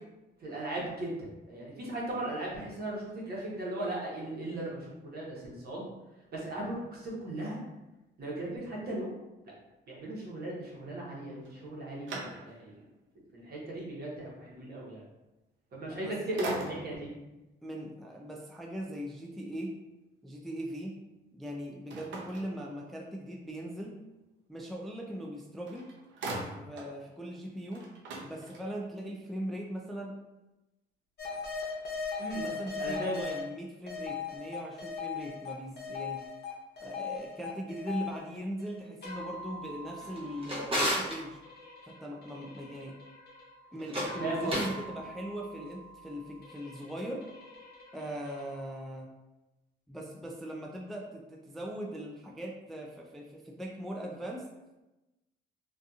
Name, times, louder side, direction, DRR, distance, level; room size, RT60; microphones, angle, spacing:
voice 1, 0.4-5.8 6.3-7.6 8.2-9.1 9.9-12.2 12.4-12.7 13.3-15.0 15.7-17.1 32.2-32.5 32.8-33.2 44.2-44.5, right 1 dB, 50° right, -4 dB, 1.0 m, -37 dB
sound 1, 11.4-12.9 13.4-13.5 15.7-16.0 16.4-17.1 21.9-23.2 25.3-25.4 25.7-27.0 27.3-27.4 27.7-29.0, right 2 dB, 75° right, 0.6 m, -41 dB
voice 2, 15.8-16.2 17.6-19.8 20.2-21.0 21.3-23.9 24.5-25.9 26.5-27.9 28.2-30.1 32.3-36.3 36.8-41.4 41.8-43.0 43.7-47.3 47.9-49.1 49.9-54.5, equal, ahead, -1 dB, 0.3 m, -40 dB
sound 2, 31.2-33.4 33.9-48.8, left 4 dB, 55° left, 0.8 m, -41 dB
Drawer open or close, 40.0-41.2 43.8-44.8, equal, 30° right, 0.9 m, -32 dB
2.6 x 2.5 x 2.3 m, 1.0 s
cardioid pair, 90°, 20 cm